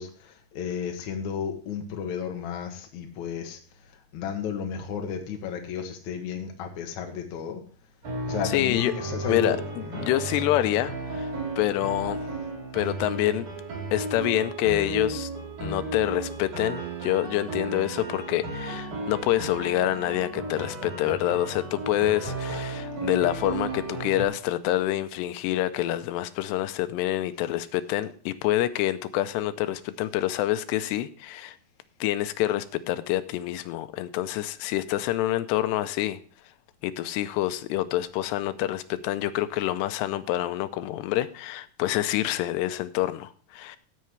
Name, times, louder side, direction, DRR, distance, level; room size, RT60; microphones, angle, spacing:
voice 1, 0.0-3.6 4.1-7.6 8.2-9.6 9.8-10.0, left 7 dB, 60° left, 3 dB, 2.4 m, -33 dB
sound 1, 8.0-24.3, right 2 dB, 50° right, 4.5 m, -34 dB
voice 2, 8.4-8.9 9.3-9.6 10.0-11.3 11.6-12.2 12.7-13.5 13.9-15.3 15.6-31.6 32.0-36.2 36.8-43.8, left 14 dB, 85° left, 11 dB, 2.9 m, -27 dB
16.0 x 7.7 x 3.2 m, 0.43 s
omnidirectional pair, 4.8 m